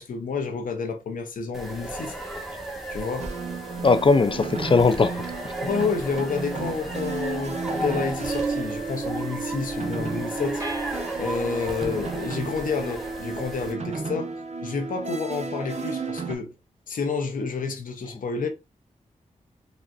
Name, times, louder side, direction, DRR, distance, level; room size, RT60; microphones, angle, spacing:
voice 1, 0.0-2.1 2.9-3.4 5.6-14.3 14.6-16.5 16.9-18.5, left 5 dB, 75° left, 0.7 m, -29 dB
sound 1, 1.5-13.7, right 2 dB, ahead, 1.0 m, -35 dB
sound 2, 3.2-16.3, right 4 dB, 55° right, 0.6 m, -33 dB
voice 2, 3.8-5.3, left 4 dB, 40° left, 0.5 m, -19 dB
sound 3, 10.6-12.0, right 2 dB, 25° right, 1.3 m, -40 dB
3.9 x 2.1 x 2.3 m
cardioid pair, 45°, 14 cm